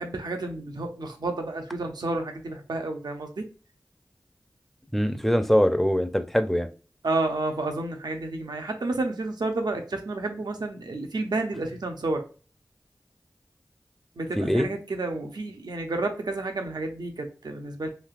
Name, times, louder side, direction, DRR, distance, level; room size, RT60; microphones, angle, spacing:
voice 1, 0.0-3.4 7.0-12.2 14.2-17.9, right 2 dB, 85° right, 5 dB, 0.5 m, -30 dB
voice 2, 4.9-6.7 14.4-14.7, equal, 5° left, 9 dB, 0.4 m, -22 dB
3.2 x 2.7 x 2.4 m, 0.36 s
wide cardioid pair, 40°, 7 cm